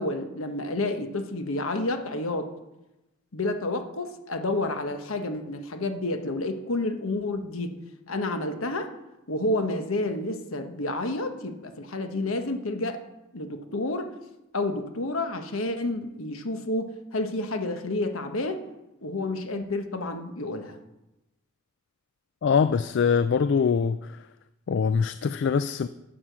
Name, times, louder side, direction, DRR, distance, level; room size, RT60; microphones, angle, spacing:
voice 1, 0.0-2.5 3.3-7.8 8.1-8.9 9.3-13.0 13.3-14.1 14.5-18.6 19.0-20.8, left 2 dB, 70° left, 7 dB, 1.2 m, -30 dB
voice 2, 22.4-24.2 24.7-25.9, left 6 dB, 55° left, 13 dB, 0.3 m, -23 dB
11.5 x 7.4 x 6.2 m, 0.96 s
head